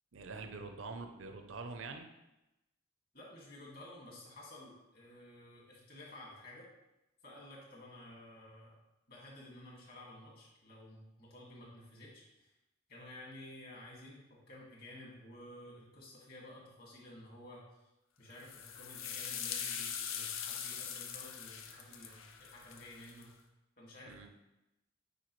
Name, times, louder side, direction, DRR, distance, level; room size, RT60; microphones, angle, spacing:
voice 1, 0.1-2.1 24.1-24.3, right 3 dB, 80° right, 6 dB, 0.6 m, -45 dB
voice 2, 3.1-6.7 7.2-8.8 9.1-12.5 12.9-17.9 18.2-23.3 23.8-24.3, left 1 dB, 50° left, -3 dB, 2.0 m, -53 dB
sound 1, 18.4-23.2, left 8 dB, 90° left, 0.7 m, -42 dB
9.1 x 4.6 x 3.1 m, 0.94 s
head